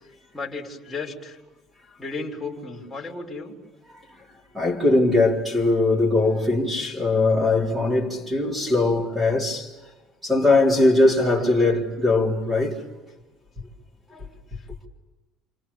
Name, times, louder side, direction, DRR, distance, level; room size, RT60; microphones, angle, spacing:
voice 1, 0.3-1.4 2.0-3.6 9.0-9.2 10.5-11.5 14.1-14.3, left 3 dB, 5° left, 3.9 m, -36 dB
voice 2, 4.5-9.7 10.2-12.8, left 2 dB, 10° right, 4.0 m, -20 dB
29.0 x 28.0 x 7.2 m
cardioid pair, 155°, 0 cm